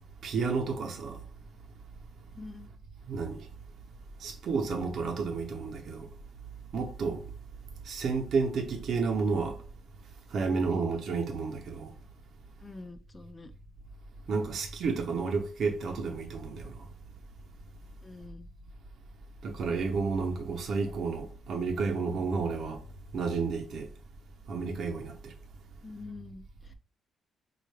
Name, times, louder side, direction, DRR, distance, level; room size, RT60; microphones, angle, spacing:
voice 1, 0.2-1.2 3.1-3.5 4.2-6.1 6.7-7.2 7.8-9.6 10.3-11.9 14.3-16.7 19.4-22.8 23.1-23.9 24.5-25.3, right 4 dB, 55° right, 0.7 m, -31 dB
voice 2, 2.3-2.7 10.4-10.6 12.6-13.5 18.0-18.5 25.8-26.7, left 3 dB, 20° left, 0.4 m, -46 dB
4.4 x 2.4 x 3.2 m
cardioid pair, 125°, 0 cm